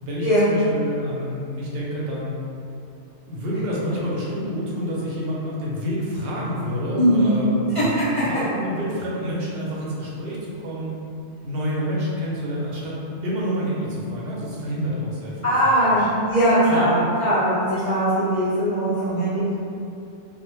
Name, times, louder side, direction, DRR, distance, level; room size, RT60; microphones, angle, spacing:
voice 1, 0.0-2.3 3.3-10.9 11.4-16.1 16.6-16.9, equal, 65° right, -5 dB, 0.7 m, -28 dB
voice 2, 7.0-7.4 7.7-8.0 15.4-19.5, right 1 dB, 45° left, -13 dB, 0.4 m, -20 dB
2.1 x 2.0 x 3.0 m, 2.6 s
omnidirectional pair, 1.2 m